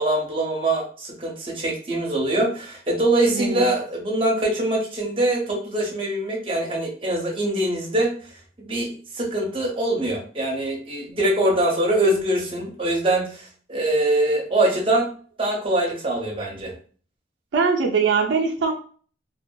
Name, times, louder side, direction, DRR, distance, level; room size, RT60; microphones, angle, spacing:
voice 1, 0.0-8.1 8.6-15.1 15.4-16.7, right 1 dB, 30° right, -2 dB, 0.7 m, -23 dB
voice 2, 3.3-3.6 17.5-18.7, right 5 dB, 85° right, 3 dB, 0.4 m, -21 dB
2.5 x 2.3 x 2.2 m, 0.42 s
head